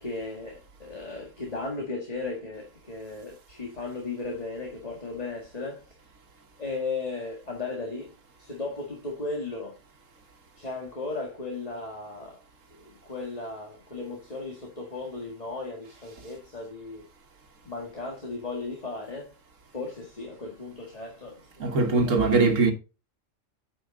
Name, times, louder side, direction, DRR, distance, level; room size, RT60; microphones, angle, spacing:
voice 1, 0.0-6.0 6.6-8.1 8.4-9.8 10.6-12.4 12.7-17.1 17.6-19.3 19.7-22.7, left 3 dB, 30° left, 1.9 m, -36 dB
voice 2, 21.6-22.7, right 4 dB, 80° right, 1.6 m, -21 dB
9.4 x 5.6 x 3.7 m
omnidirectional pair, 1.3 m